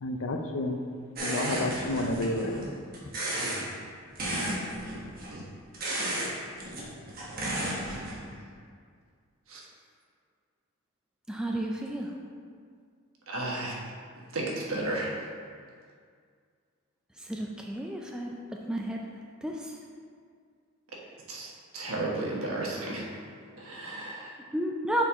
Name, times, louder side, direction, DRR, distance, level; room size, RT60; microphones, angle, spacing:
voice 1, 0.0-0.8 1.2-2.6, left 2 dB, 65° left, 5 dB, 0.5 m, -30 dB
sound 1, 1.2-2.7 2.9-3.6 4.1-5.3 5.7-6.3 6.6-8.2, right 1 dB, 40° right, 1.1 m, -33 dB
voice 2, 3.4-3.8 5.3-5.5 8.0-8.2 9.5-9.6 13.3-13.7 14.3-15.2 21.3-23.1 23.6-24.4, right 2 dB, 70° right, -3 dB, 1.1 m, -34 dB
voice 3, 11.3-12.1 17.3-18.3 18.7-19.0 19.4-19.7 24.5-25.0, right 1 dB, 5° right, -1 dB, 0.3 m, -31 dB
6.5 x 4.5 x 3.5 m, 2.1 s
head